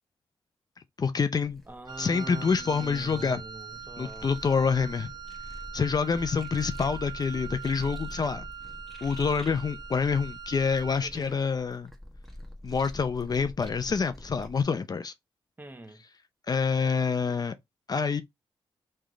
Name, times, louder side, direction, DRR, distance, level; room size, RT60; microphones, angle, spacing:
voice 1, 1.0-1.6 2.0-3.4 4.0-5.1 5.7-8.5 9.0-11.9 12.6-15.1 16.5-17.5 17.9-18.2, left 5 dB, 45° left, 0.5 m, -27 dB
sound 1, 1.4-14.6, left 1 dB, ahead, 1.4 m, -44 dB
voice 2, 1.7-4.3 11.0-11.4 15.6-16.0, right 2 dB, 20° right, 1.0 m, -43 dB
Wind instrument woodwind instrument, 1.9-11.1, right 8 dB, 45° right, 0.7 m, -43 dB
3.6 x 3.3 x 3.8 m
cardioid pair, 70°, 10 cm